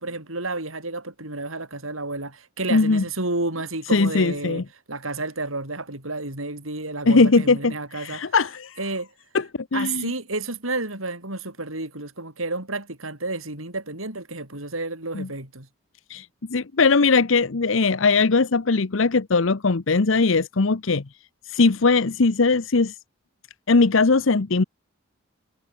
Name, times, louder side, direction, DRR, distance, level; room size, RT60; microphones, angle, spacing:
voice 1, 0.0-4.6 4.9-8.4 8.8-9.1 9.7-15.7, right 2 dB, 85° right, 7.8 m, -31 dB
voice 2, 2.7-3.0 3.9-4.6 7.0-8.8 9.3-9.4 9.7-10.1 15.1-15.3 16.1-21.0 21.4-23.0 23.7-24.6, left 4 dB, 75° left, 0.8 m, -20 dB
head